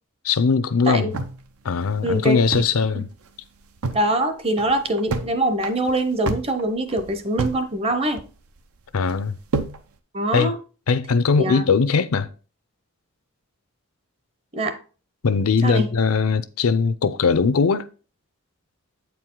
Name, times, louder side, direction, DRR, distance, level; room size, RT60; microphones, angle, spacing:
voice 1, 0.2-1.2 1.6-3.1 8.9-9.4 10.3-10.5 10.9-12.3 15.2-17.9, left 5 dB, 80° left, 0.5 m, -20 dB
sound 1, 1.1-2.8 3.1-3.2 3.6-4.1 4.5-5.3 5.6-7.6 7.9-8.6 9.1-9.8, right 3 dB, 80° right, 0.7 m, -29 dB
voice 2, 2.0-2.4 2.9-3.0 3.9-8.2 10.1-10.6 11.4-11.6 14.5-14.8 15.6-15.9, right 1 dB, 25° right, 0.7 m, -23 dB
8.3 x 4.7 x 3.7 m
head